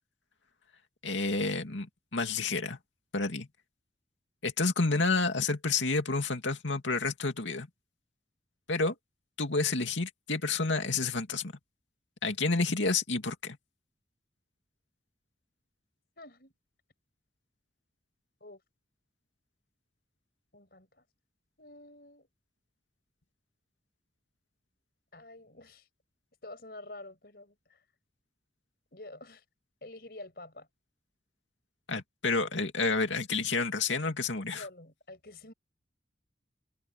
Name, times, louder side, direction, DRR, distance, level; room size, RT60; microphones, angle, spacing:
voice 1, 1.0-2.8 3.1-3.5 4.4-7.7 8.7-9.0 9.4-11.5 12.2-13.6 31.9-34.7, left 3 dB, 90° left, 2.6 m, -29 dB
voice 2, 16.2-16.5 18.4-18.6 20.5-21.0 21.6-22.3 25.1-25.9 26.4-27.8 28.9-29.4 29.8-30.7 34.5-35.5, left 2 dB, 55° left, 6.3 m, -48 dB
head